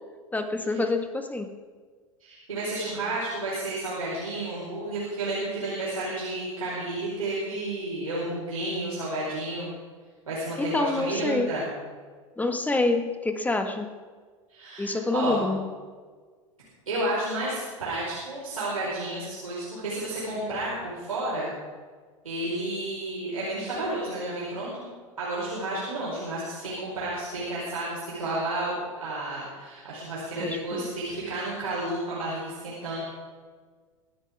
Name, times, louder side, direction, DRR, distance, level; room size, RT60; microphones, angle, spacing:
voice 1, 0.3-1.5 10.6-11.5 12.4-13.9 14.8-15.7 30.4-30.8, left 2 dB, 10° left, 6 dB, 1.6 m, -27 dB
voice 2, 2.2-9.7 10.3-11.7 14.5-15.4 16.9-21.5 22.2-24.9 25.2-33.0, right 2 dB, 85° right, -8 dB, 4.8 m, -31 dB
24.0 x 10.0 x 3.6 m, 1.5 s
hypercardioid pair, 90°, 17 cm